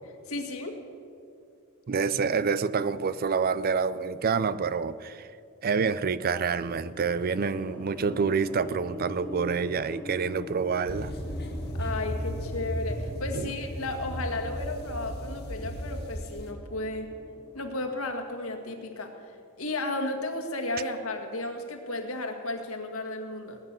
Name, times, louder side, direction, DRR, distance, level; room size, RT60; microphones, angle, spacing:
voice 1, 0.3-0.8 11.8-17.1 17.5-19.1 19.6-23.6, left 2 dB, 75° left, 5 dB, 1.9 m, -33 dB
voice 2, 1.9-5.3 5.6-11.1 13.4-13.5, right 5 dB, 45° right, 16 dB, 0.5 m, -27 dB
sound 1, 6.5-18.8, left 1 dB, 10° left, 2.1 m, -44 dB
sound 2, 10.9-16.5, equal, 50° left, 1.8 m, -35 dB
19.5 x 9.6 x 7.5 m, 2.5 s
head